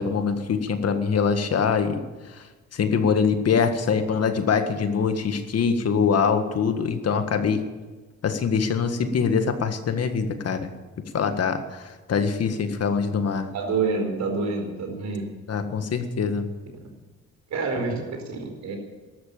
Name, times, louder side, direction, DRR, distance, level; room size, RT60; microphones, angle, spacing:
voice 1, 0.0-2.0 2.3-2.4 2.7-7.6 8.2-10.7 11.1-13.5 15.5-16.5, left 6 dB, 55° left, 8 dB, 1.8 m, -24 dB
voice 2, 13.5-15.2 17.5-18.8, right 4 dB, 65° right, 4 dB, 4.7 m, -27 dB
13.0 x 12.5 x 8.5 m, 1.3 s
cardioid pair, 90°, 30 cm